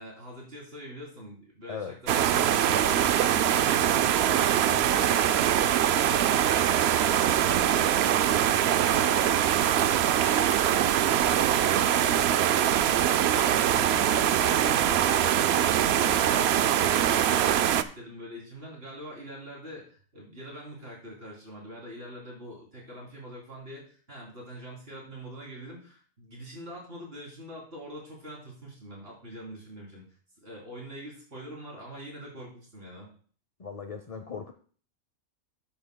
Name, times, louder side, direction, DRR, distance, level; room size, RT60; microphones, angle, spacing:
voice 1, 0.0-4.2 17.2-30.1 30.4-33.1, equal, 45° right, -3 dB, 3.5 m, -43 dB
sound 1, 2.1-17.8, right 10 dB, 65° right, 0.7 m, -23 dB
voice 2, 33.6-34.5, left 6 dB, 40° left, 7 dB, 0.5 m, -38 dB
12.5 x 8.6 x 2.2 m, 0.43 s
omnidirectional pair, 1.4 m